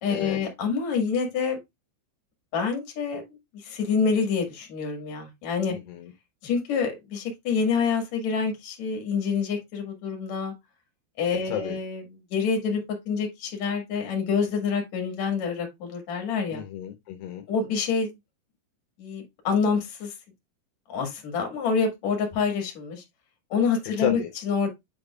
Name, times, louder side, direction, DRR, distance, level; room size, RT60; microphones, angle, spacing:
voice 1, 0.0-1.6 2.5-3.2 3.5-5.7 6.4-10.5 11.2-16.6 17.5-18.1 19.0-20.1 20.9-23.0 23.5-24.7, left 5 dB, 55° left, 2.2 m, -27 dB
voice 2, 5.7-6.1 11.5-11.8 16.5-17.4 24.0-24.3, left 11 dB, 80° left, 2.5 m, -31 dB
8.9 x 5.2 x 2.4 m
omnidirectional pair, 5.6 m